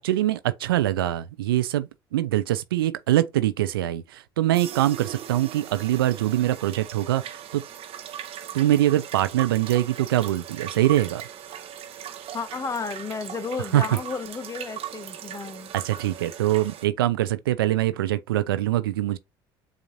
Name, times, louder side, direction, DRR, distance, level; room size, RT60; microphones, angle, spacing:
voice 1, 0.0-7.6 8.5-11.2 13.7-13.8 15.7-19.2, right 14 dB, 85° right, 0.4 m, -23 dB
sound 1, 4.5-16.9, right 10 dB, 55° right, 0.7 m, -39 dB
voice 2, 12.3-15.7, left 4 dB, 25° left, 0.7 m, -33 dB
7.1 x 2.5 x 2.7 m
hypercardioid pair, 60°, 12 cm